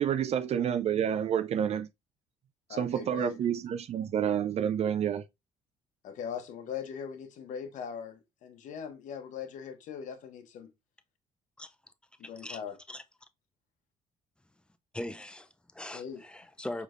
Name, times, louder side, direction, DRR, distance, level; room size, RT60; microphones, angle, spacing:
voice 1, 0.0-1.9 2.7-5.2, right 9 dB, 50° right, 0.4 m, -29 dB
voice 2, 2.7-3.4 6.0-10.7 12.2-12.7 15.9-16.2, left 7 dB, 70° left, 0.9 m, -40 dB
voice 3, 12.2-12.6 12.9-13.0 14.9-16.8, left 1 dB, 5° left, 0.6 m, -40 dB
4.7 x 3.4 x 2.5 m
supercardioid pair, 80°, 14 cm